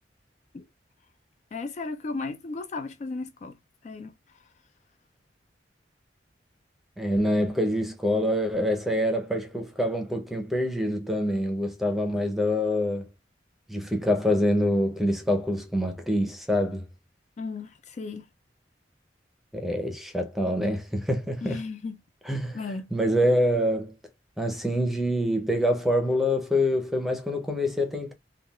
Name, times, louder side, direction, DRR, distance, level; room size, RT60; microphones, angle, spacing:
voice 1, 1.5-3.5 3.8-4.1 17.4-18.2 21.4-22.0 22.5-22.9, left 3 dB, 40° left, 0.3 m, -35 dB
voice 2, 7.0-13.1 13.7-16.8 19.5-21.6 22.2-24.0 24.4-28.1, left 1 dB, ahead, 0.6 m, -26 dB
3.5 x 2.3 x 2.3 m
head